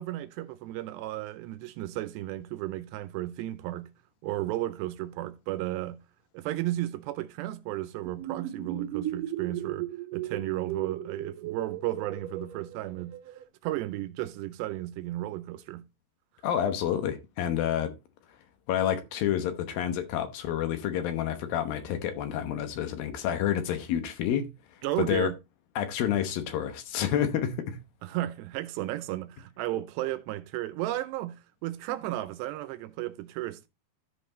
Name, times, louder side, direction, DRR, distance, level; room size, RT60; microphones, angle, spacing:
voice 1, 0.0-3.9 4.2-6.0 6.3-13.1 13.6-15.8 24.8-25.3 28.0-33.7, right 15 dB, 80° right, 2.7 m, -34 dB
sound 1, 8.1-13.4, right 11 dB, 65° right, 2.4 m, -36 dB
voice 2, 16.4-17.9 18.7-24.5 25.0-25.3 25.8-27.8, left 10 dB, 70° left, 2.5 m, -29 dB
13.5 x 5.2 x 3.8 m
omnidirectional pair, 5.1 m